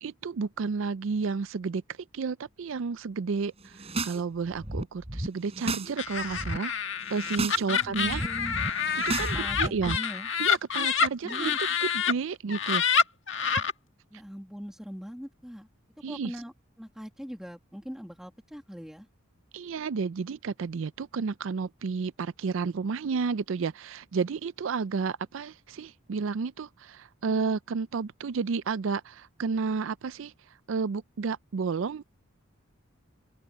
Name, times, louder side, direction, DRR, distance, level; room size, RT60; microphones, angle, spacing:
voice 1, 0.0-1.8 2.1-6.7 7.1-8.2 9.0-10.0 10.4-11.5 11.8-12.8 16.0-16.3 19.5-30.3 30.7-32.0, right 5 dB, 70° right, 0.4 m, -31 dB
sound 1, 3.6-4.2 4.5-5.9 6.2-6.6 7.0-7.6 7.9-10.0, right 2 dB, 30° right, 4.2 m, -33 dB
Laughter, 6.0-12.1 12.5-13.7, left 6 dB, 60° left, 1.7 m, -27 dB
voice 2, 7.7-8.6 9.3-10.3 10.8-10.9 11.2-11.6 14.1-15.7 16.1-19.1, equal, ahead, 1.9 m, -41 dB
open air
head